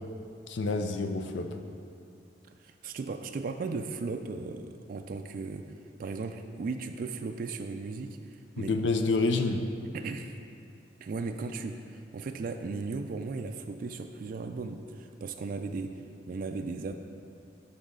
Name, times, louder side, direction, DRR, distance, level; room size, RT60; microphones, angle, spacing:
voice 1, 0.5-1.6 8.6-9.7, left 3 dB, 80° left, 6 dB, 0.5 m, -28 dB
voice 2, 2.6-5.7 6.0-8.8 9.9-10.4 11.0-16.0 16.3-16.9, right 4 dB, 50° right, 6 dB, 0.3 m, -36 dB
11.5 x 4.1 x 3.7 m, 2.4 s
head